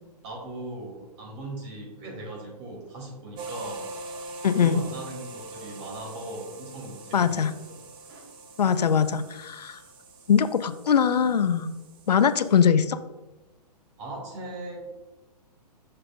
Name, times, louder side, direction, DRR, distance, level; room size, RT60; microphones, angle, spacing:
voice 1, 0.2-3.9 4.5-8.3 14.0-14.8, right 1 dB, 45° right, -1 dB, 2.3 m, -39 dB
sound 1, 3.4-12.7, right 2 dB, 25° right, 0.8 m, -43 dB
voice 2, 4.4-4.8 7.1-7.5 8.6-9.8 10.3-11.7 12.1-13.0, left 7 dB, 75° left, 12 dB, 0.5 m, -22 dB
7.6 x 6.6 x 2.3 m, 1.1 s
figure-of-eight pair, 115°, 21 cm